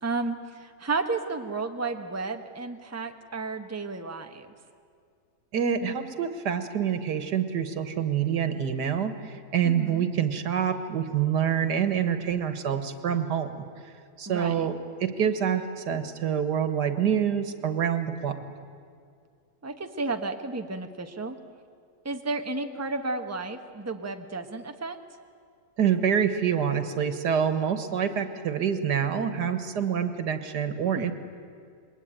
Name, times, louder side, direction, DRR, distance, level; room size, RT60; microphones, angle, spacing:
voice 1, 0.0-4.5 9.6-10.1 14.3-14.7 19.6-21.4 22.0-25.0 30.9-31.1, right 3 dB, 10° right, 5 dB, 1.1 m, -32 dB
voice 2, 5.5-13.7 14.2-18.4 25.8-31.1, right 8 dB, 90° right, 9 dB, 2.0 m, -26 dB
27.5 x 21.5 x 9.1 m, 2.3 s
omnidirectional pair, 1.7 m